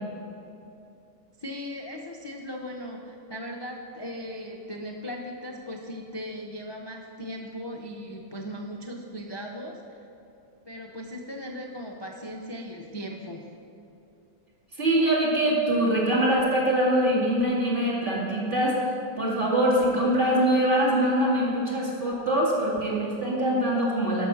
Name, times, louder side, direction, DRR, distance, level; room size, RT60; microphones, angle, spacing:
voice 1, 1.4-10.0 10.7-13.4, equal, 35° left, 0 dB, 0.4 m, -38 dB
voice 2, 14.8-18.8 19.2-24.3, right 1 dB, 30° right, -5 dB, 2.5 m, -23 dB
12.0 x 6.3 x 6.3 m, 2.8 s
omnidirectional pair, 1.7 m